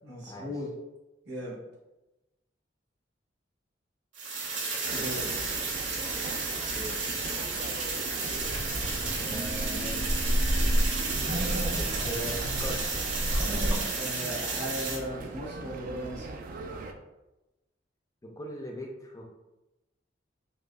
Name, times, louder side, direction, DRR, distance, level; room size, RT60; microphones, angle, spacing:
voice 1, 0.0-0.7 1.2-1.6 4.9-5.3 12.0-12.2 13.9-16.3, equal, 65° right, -5 dB, 1.2 m, -37 dB
sound 1, 4.1-14.9, right 4 dB, 80° right, 0.9 m, -33 dB
sound 2, 4.8-16.9, right 3 dB, 50° right, 0.3 m, -40 dB
Wind, 8.3-13.8, equal, 30° right, 0.8 m, -30 dB
voice 2, 9.2-10.2 11.8-13.0 18.4-19.2, equal, 20° left, 0 dB, 0.4 m, -40 dB
4.9 x 2.2 x 2.2 m, 1.0 s
head